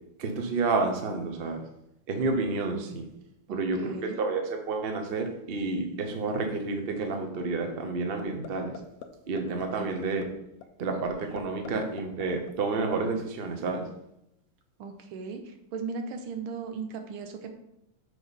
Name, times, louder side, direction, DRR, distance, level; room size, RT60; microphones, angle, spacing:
voice 1, 0.2-1.6 2.1-3.0 3.5-8.7 9.3-10.2 10.8-13.8, right 3 dB, 60° right, 4 dB, 0.6 m, -30 dB
voice 2, 3.5-4.2 9.8-9.9 14.8-17.5, right 5 dB, 85° right, 6 dB, 1.7 m, -37 dB
sound 1, 8.2-8.5 8.7-9.1 9.4-9.6 10.0-10.3 10.6-10.7 11.1-11.7 12.0-13.0, left 9 dB, 85° left, 0.7 m, -42 dB
6.2 x 5.4 x 4.0 m, 0.81 s
omnidirectional pair, 2.2 m